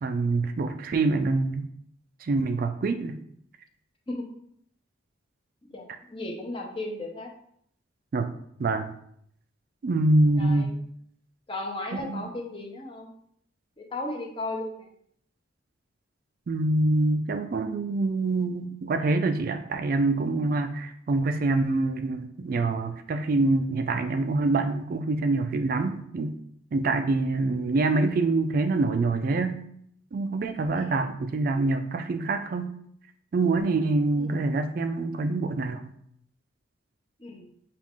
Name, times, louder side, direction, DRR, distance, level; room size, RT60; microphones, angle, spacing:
voice 1, 0.0-1.7 2.2-3.2 8.1-8.3 8.6-8.9 9.8-10.7 11.9-12.3 16.5-26.4 26.7-29.6 30.1-32.7 33.3-35.9, right 2 dB, 45° right, 7 dB, 0.3 m, -25 dB
voice 2, 5.7-7.3 10.4-10.8 11.5-13.1 13.8-14.9 30.8-31.1 34.2-34.4 37.2-37.5, left 2 dB, 25° left, 0 dB, 0.7 m, -35 dB
6.1 x 2.4 x 3.6 m, 0.69 s
head